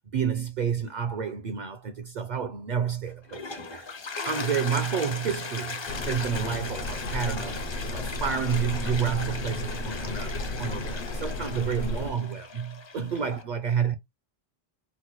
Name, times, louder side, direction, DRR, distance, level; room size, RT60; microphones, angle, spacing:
voice 1, 0.1-3.9 4.2-7.6 7.9-14.0, right 7 dB, 55° right, 0.5 m, -30 dB
Toilet flush, 3.1-13.4, left 4 dB, 35° left, 0.5 m, -38 dB
sound 1, 5.9-12.1, left 2 dB, 65° left, 0.8 m, -34 dB
4.0 x 2.1 x 2.9 m
omnidirectional pair, 1.0 m